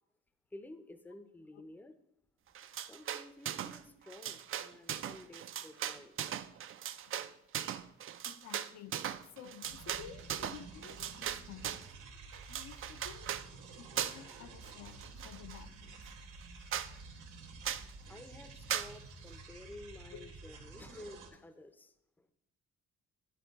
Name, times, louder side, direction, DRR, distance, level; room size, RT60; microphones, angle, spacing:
voice 1, 0.5-1.9 2.9-6.2 18.1-22.3, left 2 dB, 5° left, 9 dB, 0.5 m, -52 dB
sound 1, 2.5-3.8 4.1-11.9 12.3-13.5 14.0-14.4 14.6-15.6 16.1-16.2 16.4-16.5 16.7-16.9 17.6-17.9 18.7-18.9, right 10 dB, 45° right, 0.4 m, -39 dB
voice 2, 8.2-9.0 9.3-11.8 12.5-13.3 13.8-15.9 20.1-20.2, left 9 dB, 70° left, 8 dB, 0.6 m, -52 dB
sound 2, 9.6-21.3, right 3 dB, 90° right, 1.1 m, -51 dB
9.8 x 4.4 x 4.0 m, 0.80 s
cardioid pair, 90°, 30 cm